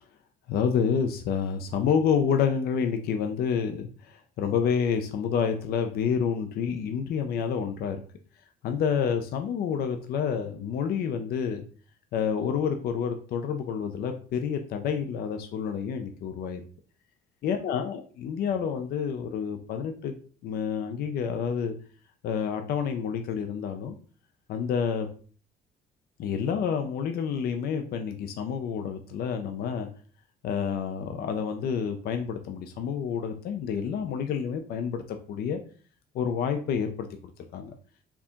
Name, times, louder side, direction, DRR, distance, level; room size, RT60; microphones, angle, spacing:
voice 1, 0.5-8.0 8.6-11.6 12.1-16.6 17.4-20.1 20.4-21.7 22.2-24.0 24.5-25.1 26.2-29.9 30.4-35.6 36.1-37.1 37.5-37.7, left 7 dB, 65° left, 6 dB, 0.6 m, -28 dB
4.6 x 2.8 x 3.6 m, 0.41 s
cardioid pair, 110°, 17 cm